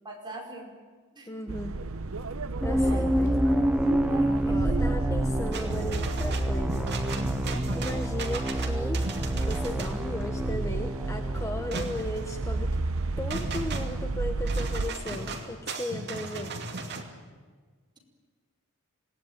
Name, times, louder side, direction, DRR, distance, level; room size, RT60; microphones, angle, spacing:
voice 1, 0.0-0.7 1.1-1.5 2.8-3.0 4.0-5.0 7.8-8.2, right 2 dB, 20° right, -1 dB, 5.2 m, -43 dB
voice 2, 1.3-1.8 2.6-3.4 4.5-7.0 7.7-9.0 9.5-12.8 13.2-16.5, left 1 dB, 15° left, 5 dB, 1.0 m, -36 dB
sound 1, 1.5-14.9, right 3 dB, 65° right, 0.9 m, -32 dB
sound 2, 2.6-12.6, equal, 5° right, 0.7 m, -29 dB
sound 3, 5.5-17.0, right 3 dB, 50° right, 2.6 m, -37 dB
27.0 x 18.5 x 9.5 m, 1.5 s
head